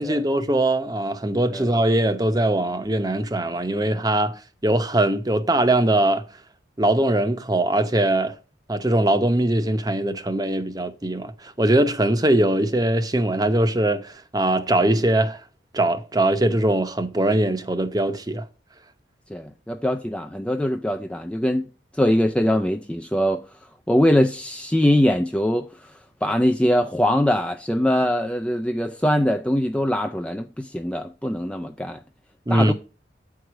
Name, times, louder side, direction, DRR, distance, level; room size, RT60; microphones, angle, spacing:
voice 1, 0.0-4.3 4.6-6.2 6.8-8.3 8.7-15.4 15.7-18.4 32.5-32.7, right 1 dB, 20° right, 0.8 m, -21 dB
voice 2, 19.3-21.7 22.0-23.4 23.9-25.7 26.2-32.0 32.5-32.7, equal, 5° left, 0.3 m, -22 dB
9.0 x 4.8 x 6.0 m
head